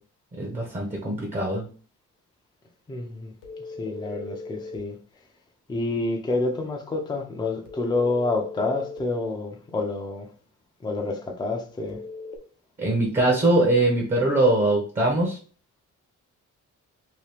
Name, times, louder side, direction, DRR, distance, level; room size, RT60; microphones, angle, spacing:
voice 1, 0.4-1.7 12.8-15.4, right 2 dB, 25° right, 0.7 m, -22 dB
voice 2, 2.9-3.3 3.8-4.9 5.7-10.3 10.8-12.0, left 3 dB, 15° left, 0.5 m, -28 dB
sound 1, 3.4-4.8 7.7-9.1 11.9-12.4, left 3 dB, 80° left, 0.8 m, -38 dB
2.9 x 2.8 x 3.3 m
wide cardioid pair, 160°, 32 cm